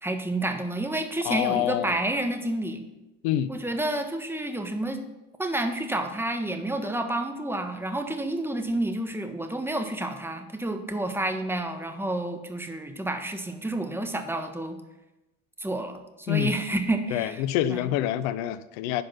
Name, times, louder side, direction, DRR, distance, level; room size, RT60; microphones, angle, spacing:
voice 1, 0.0-2.8 3.5-5.0 5.4-14.8 15.6-17.4 17.7-17.9, right 1 dB, 5° right, 6 dB, 1.3 m, -29 dB
voice 2, 1.2-1.9 3.2-3.5 16.3-16.5 17.1-19.0, left 12 dB, 65° left, 15 dB, 0.6 m, -26 dB
10.0 x 5.4 x 5.6 m, 0.98 s
hypercardioid pair, 60°, 40 cm